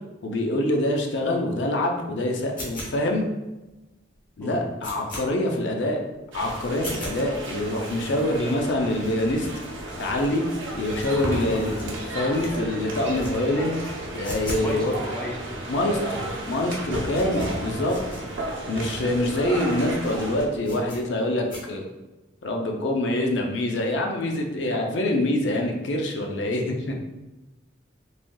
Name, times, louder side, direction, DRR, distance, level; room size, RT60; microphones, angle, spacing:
voice 1, 0.2-3.2 4.4-6.0 6.3-9.5 10.0-10.4 10.7-13.8 14.1-14.9 15.7-18.0 18.7-21.8 22.4-27.0, left 1 dB, 70° left, 1 dB, 0.5 m, -25 dB
sound 1, 2.6-3.2 3.7-3.8 4.1-4.2 4.5-5.2 5.7-5.8 6.1-6.2 6.7-7.2 7.7-7.8 8.0-8.1 8.3-8.4 8.6-8.7 9.0-10.3 10.7-12.0 12.3-12.6 13.0-13.3 13.6-14.7 15.0-15.1 15.7-15.8 16.0-16.4 16.6-18.2 18.7-18.8 19.0-19.1 19.6-19.7 20.0-20.1 20.6-21.0 21.5-21.6, equal, 45° left, 1.0 m, -38 dB
sound 2, 6.3-20.5, right 1 dB, 85° right, 0.6 m, -33 dB
voice 2, 14.5-15.6, equal, 5° left, -3 dB, 0.4 m, -35 dB
3.3 x 2.6 x 2.2 m, 1.1 s
head